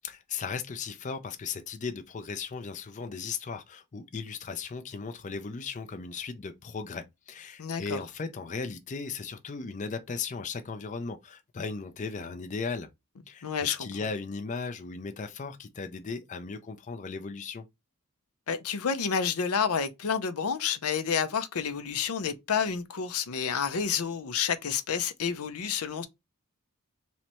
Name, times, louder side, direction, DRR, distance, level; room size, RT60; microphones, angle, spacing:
voice 1, 0.0-12.9 13.3-17.7, left 5 dB, 35° left, 0.4 m, -37 dB
voice 2, 7.6-8.0 13.4-13.9 18.5-26.1, left 6 dB, 80° left, 0.6 m, -29 dB
3.2 x 3.0 x 4.1 m
head